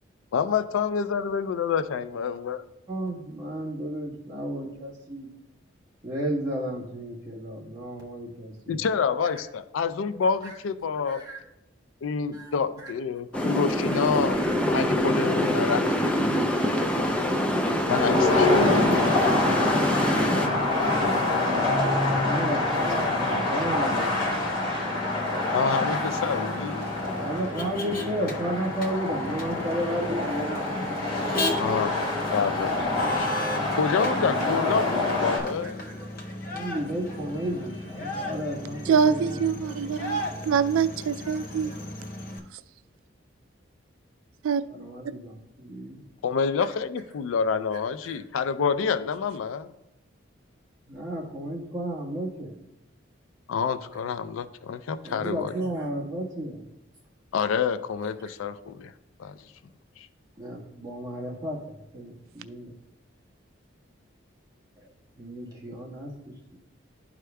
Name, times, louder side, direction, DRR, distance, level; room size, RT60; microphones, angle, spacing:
voice 1, 0.3-2.6 8.7-11.2 12.0-14.4 14.7-16.6 17.9-19.1 25.5-27.0 31.6-32.0 32.3-33.5 33.7-35.8 46.2-49.7 53.5-55.5 57.3-58.9 59.2-59.4 60.0-60.1, left 6 dB, 85° left, 12 dB, 0.4 m, -28 dB
voice 2, 2.9-5.3 6.0-8.9 10.1-10.5 11.0-11.4 12.3-12.9 13.9-14.0 14.4-14.7 15.4-15.7 16.8-17.1 20.4-24.8 25.9-26.0 27.2-30.8 32.0-32.2 34.1-34.2 35.6-36.1 36.5-39.4 41.2-41.8 44.7-46.0 48.0-48.2 50.9-52.5 55.0-56.6 58.0-58.3 60.4-62.7 65.1-66.6, right 1 dB, 20° right, -5 dB, 1.5 m, -34 dB
sound 1, 13.3-20.5, equal, 5° left, 0.4 m, -25 dB
sound 2, 17.9-35.4, left 2 dB, 25° left, 2.6 m, -26 dB
Motor vehicle (road), 23.2-42.4, left 1 dB, 45° left, 0.7 m, -36 dB
voice 3, 38.9-41.7 44.4-44.6, right 6 dB, 85° right, 14 dB, 0.3 m, -24 dB
12.0 x 4.8 x 2.3 m, 0.89 s
head